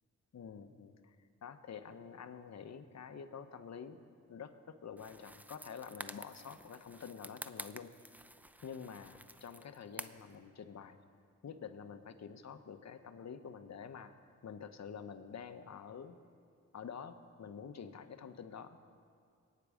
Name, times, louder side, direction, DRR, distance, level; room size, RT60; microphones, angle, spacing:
voice 1, 0.3-1.2 1.4-4.0 4.3-7.9 8.6-11.0 11.4-14.1 14.4-16.2 16.7-18.8, left 6 dB, 60° left, 8 dB, 1.1 m, -48 dB
sound 1, 5.0-10.4, right 1 dB, 5° right, 0.7 m, -50 dB
22.5 x 9.6 x 5.1 m, 2.3 s
cardioid pair, 60°, 30 cm